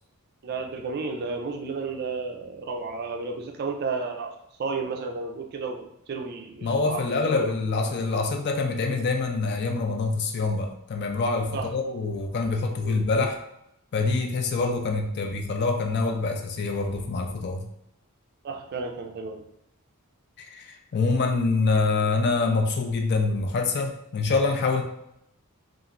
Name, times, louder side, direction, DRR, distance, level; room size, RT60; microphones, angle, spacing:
voice 1, 0.4-4.3 4.6-7.5 11.5-11.7 12.8-13.0 18.4-19.4, right 4 dB, 45° right, 4 dB, 0.3 m, -32 dB
voice 2, 6.6-13.4 13.9-17.6 20.4-24.8, left 3 dB, 50° left, 3 dB, 0.4 m, -25 dB
2.9 x 2.4 x 2.5 m, 0.78 s
head